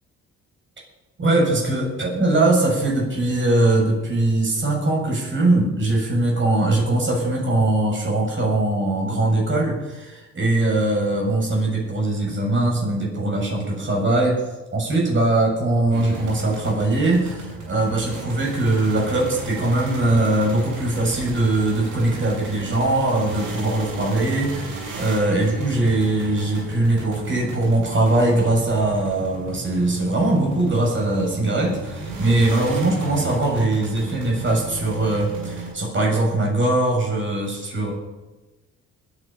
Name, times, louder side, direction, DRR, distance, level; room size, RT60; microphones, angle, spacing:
voice 1, 1.2-14.4 14.7-37.9, right 2 dB, 40° right, -1 dB, 7.1 m, -21 dB
sound 1, 15.9-35.7, right 3 dB, 80° right, 6.9 m, -35 dB
20.5 x 9.6 x 5.7 m, 1.1 s
cardioid pair, 90°, 30 cm